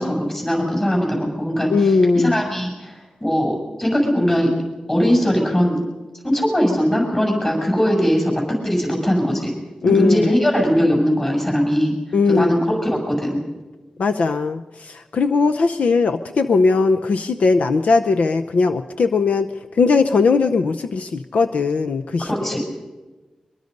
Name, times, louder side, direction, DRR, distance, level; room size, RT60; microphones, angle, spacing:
voice 1, 0.0-4.5 4.9-5.8 6.2-8.3 8.6-9.5 9.9-11.9 12.3-13.4 22.2-22.6, equal, 20° left, 0 dB, 7.3 m, -20 dB
voice 2, 1.7-2.4 9.8-10.3 12.1-12.6 14.0-22.3, left 4 dB, 80° left, 8 dB, 0.7 m, -18 dB
23.0 x 22.5 x 5.4 m, 1.2 s
wide cardioid pair, 145°, 2 cm